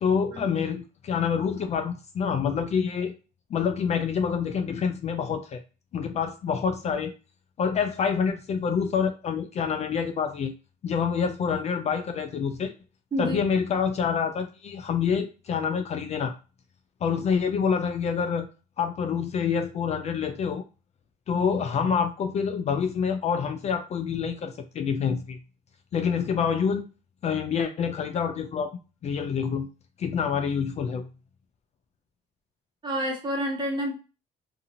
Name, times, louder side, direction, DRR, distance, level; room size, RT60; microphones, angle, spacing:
voice 1, 0.0-3.1 3.5-5.6 5.9-7.1 7.6-10.5 10.8-12.7 13.2-16.3 17.0-18.5 18.8-20.6 21.3-25.4 25.9-26.8 27.2-28.7 29.0-29.7 30.0-31.1, left 6 dB, 40° left, 7 dB, 0.4 m, -27 dB
voice 2, 13.1-13.4 32.8-33.9, equal, 25° right, 0 dB, 1.0 m, -28 dB
2.6 x 2.6 x 2.7 m, 0.32 s
cardioid pair, 110°, 17 cm